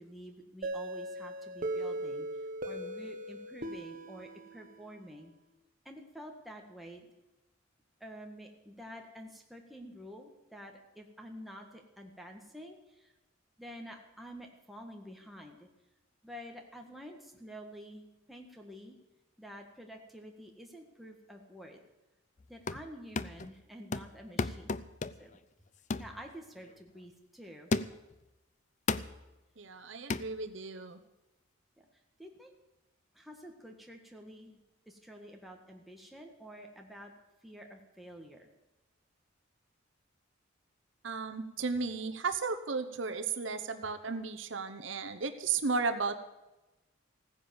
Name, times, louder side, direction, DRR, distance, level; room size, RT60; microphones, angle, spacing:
voice 1, 0.0-2.3 2.7-5.3 5.8-7.1 8.0-13.1 13.6-15.7 16.2-19.0 19.4-21.8 22.5-24.8 25.2-25.3 26.0-27.7 31.8-31.9 32.2-32.5 33.1-37.1 37.4-38.5, equal, ahead, 1 dB, 1.7 m, -49 dB
sound 1, 0.6-5.3, right 1 dB, 40° right, 1.2 m, -39 dB
sound 2, 22.4-22.9 23.2-23.5 23.9-25.4 25.9-26.2 26.6-26.8 27.7-28.1 28.9-29.2 30.1-30.3, left 3 dB, 35° left, 0.5 m, -34 dB
voice 2, 29.6-31.0 41.0-46.2, right 4 dB, 65° right, 8 dB, 0.9 m, -34 dB
16.0 x 10.0 x 7.1 m, 1.0 s
head